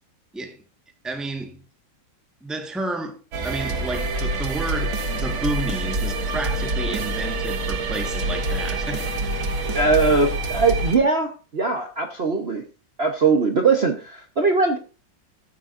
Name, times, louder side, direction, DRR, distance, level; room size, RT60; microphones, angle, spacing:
voice 1, 1.0-1.6 2.4-3.2 3.4-9.1, right 2 dB, ahead, 1.2 m, -31 dB
sound 1, 3.3-11.0, right 2 dB, 85° right, 2.4 m, -26 dB
voice 2, 9.7-12.6 13.0-14.8, right 4 dB, 40° right, 1.1 m, -20 dB
14.5 x 8.6 x 2.6 m
omnidirectional pair, 2.1 m